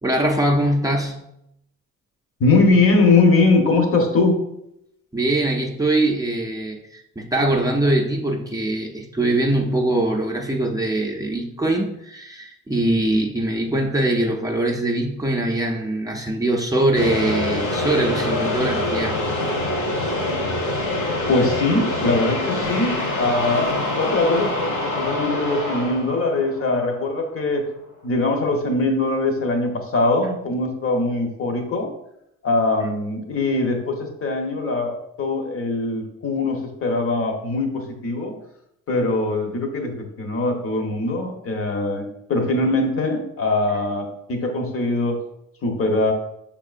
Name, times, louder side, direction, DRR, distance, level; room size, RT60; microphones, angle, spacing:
voice 1, 0.0-1.2 5.1-19.2, right 1 dB, 10° right, 0 dB, 0.5 m, -22 dB
voice 2, 2.4-4.4 21.3-27.6 28.0-31.9 32.4-38.3 38.9-45.2 45.6-46.1, left 2 dB, 45° left, 3 dB, 1.0 m, -21 dB
sound 1, 16.9-27.2, left 2 dB, 75° left, 1.6 m, -25 dB
5.8 x 3.6 x 2.5 m, 0.79 s
cardioid pair, 90°, 30 cm